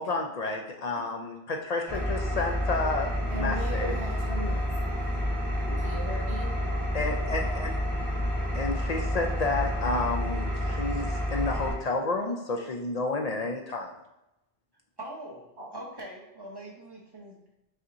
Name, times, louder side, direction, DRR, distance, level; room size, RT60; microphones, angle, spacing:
voice 1, 0.0-3.1 3.3-4.0 6.9-7.7 8.5-13.9, left 3 dB, 55° left, 2 dB, 0.4 m, -30 dB
Engine, 1.9-11.7, equal, ahead, 1.1 m, -29 dB
voice 2, 3.3-5.2 5.6-6.5 15.6-15.7, right 1 dB, 90° right, -3 dB, 1.5 m, -38 dB
voice 3, 15.0-17.4, right 1 dB, 25° right, -2 dB, 0.7 m, -42 dB
5.6 x 2.8 x 2.5 m, 0.91 s
omnidirectional pair, 1.1 m